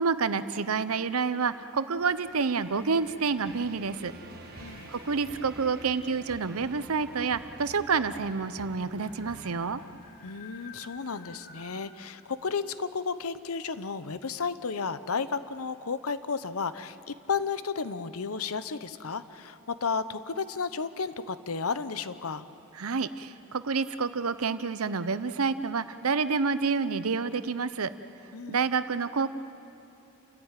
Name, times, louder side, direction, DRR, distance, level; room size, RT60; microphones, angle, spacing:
voice 1, 0.0-4.1 4.6-9.8 22.8-27.9 28.5-29.3, right 5 dB, 85° right, 13 dB, 0.8 m, -28 dB
sound 1, 1.9-11.7, left 3 dB, 45° left, 2.8 m, -54 dB
sound 2, 3.4-9.9, right 2 dB, 45° right, 1.6 m, -48 dB
voice 2, 4.6-4.9 10.2-22.4 28.3-28.6, left 5 dB, 85° left, 13 dB, 0.9 m, -33 dB
30.0 x 14.5 x 9.1 m, 3.0 s
head